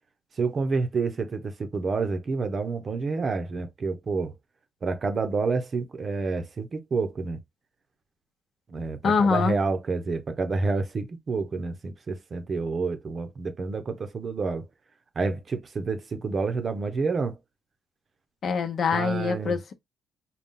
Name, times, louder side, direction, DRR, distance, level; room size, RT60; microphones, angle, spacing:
voice 1, 0.4-4.3 4.8-7.4 8.7-14.7 15.2-17.4 18.9-19.6, right 4 dB, 40° right, 0.8 m, -29 dB
voice 2, 9.0-9.6 18.4-19.7, left 5 dB, 55° left, 0.8 m, -24 dB
4.1 x 2.3 x 3.6 m
cardioid pair, 90°, 0 cm